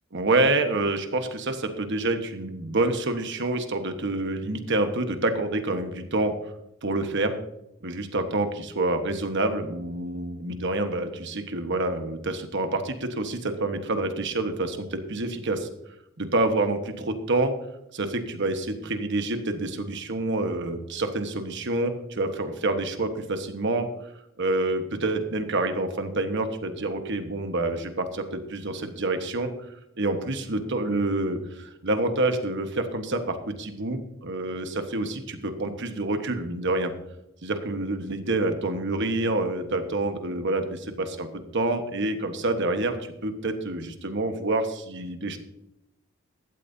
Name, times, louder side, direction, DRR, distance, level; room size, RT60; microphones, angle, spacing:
voice 1, 0.1-6.3 6.8-7.4 7.8-15.7 16.2-17.5 17.9-23.9 24.4-29.5 30.0-36.9 37.4-41.3 41.5-45.4, right 2 dB, 60° right, 7 dB, 1.3 m, -27 dB
15.5 x 12.5 x 2.8 m, 0.87 s
head